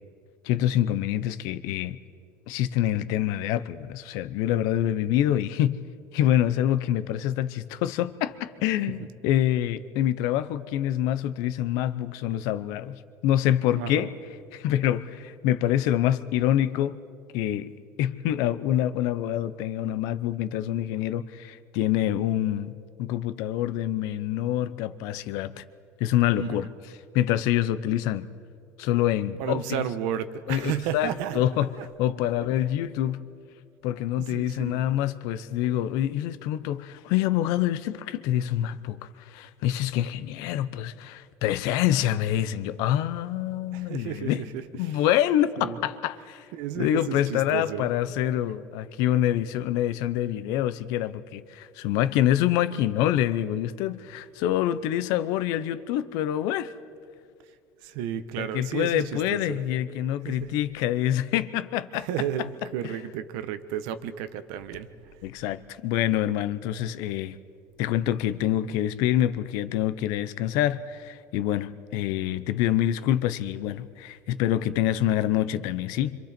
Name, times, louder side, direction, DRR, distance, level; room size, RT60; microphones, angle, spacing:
voice 1, 0.4-2.0 2.5-5.8 6.1-14.1 14.5-17.0 17.3-17.7 18.0-25.6 26.0-26.7 27.1-28.3 28.8-29.6 30.5-31.7 32.0-33.2 33.8-44.4 44.8-46.5 46.8-56.7 58.4-62.1 65.2-67.4 67.8-76.2, left 12 dB, 70° left, 0.8 m, -26 dB
voice 2, 13.7-14.1 26.3-26.6 29.4-31.4 31.8-31.9 34.2-34.8 43.7-45.1 45.6-45.8 46.5-47.9 57.8-59.6 60.2-60.5 61.9-65.1, right 10 dB, 80° right, 1.2 m, -33 dB
27.5 x 26.0 x 4.5 m
cardioid pair, 170°, 6 cm